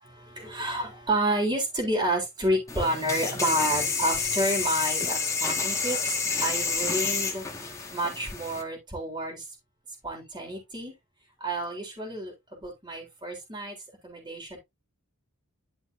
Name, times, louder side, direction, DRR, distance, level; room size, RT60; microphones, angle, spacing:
voice 1, 0.0-6.0 6.4-7.4 7.9-9.4 10.0-10.9 11.4-13.8 14.0-14.6, right 1 dB, 20° right, 4.0 m, -29 dB
sound 1, 2.7-8.6, left 4 dB, 15° left, 1.9 m, -29 dB
12.0 x 6.0 x 2.7 m
head